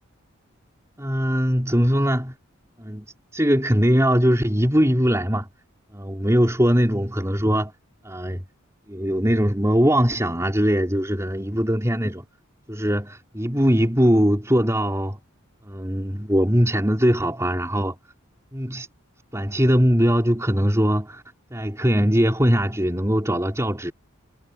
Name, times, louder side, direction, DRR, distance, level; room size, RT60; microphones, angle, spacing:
voice 1, 1.0-2.3 2.8-3.0 3.3-5.5 5.9-7.7 8.0-8.4 8.9-12.2 12.7-15.2 15.6-18.0 18.5-18.9 19.3-21.2 21.5-23.9, equal, 15° right, 4.9 m, -21 dB
head